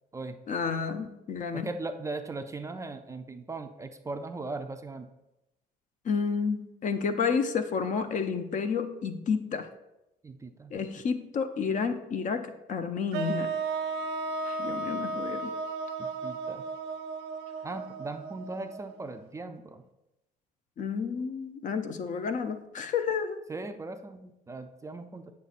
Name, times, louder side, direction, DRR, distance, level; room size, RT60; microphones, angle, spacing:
voice 1, 0.5-1.7 6.0-9.7 10.7-13.5 14.5-15.5 20.8-23.4, left 5 dB, 50° left, 9 dB, 0.6 m, -30 dB
voice 2, 1.5-5.1 10.2-10.9 16.0-16.6 17.6-19.8 23.5-25.3, right 3 dB, 20° right, 7 dB, 0.4 m, -39 dB
sound 1, 13.1-19.2, right 4 dB, 85° right, 0.7 m, -34 dB
8.3 x 6.6 x 2.5 m, 0.94 s
cardioid pair, 110°, 17 cm